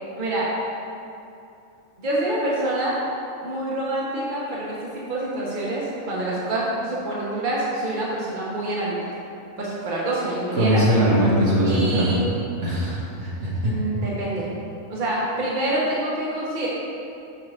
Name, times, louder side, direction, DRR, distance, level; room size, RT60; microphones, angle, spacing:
voice 1, 0.2-0.5 2.0-3.0 3.4-9.2 9.6-10.8 11.6-12.2 13.6-14.5 14.9-16.7, right 1 dB, 35° right, -6 dB, 1.6 m, -26 dB
voice 2, 10.5-12.2 12.6-13.7, equal, 50° right, -6 dB, 1.8 m, -21 dB
7.6 x 5.8 x 5.2 m, 2.7 s
omnidirectional pair, 1.6 m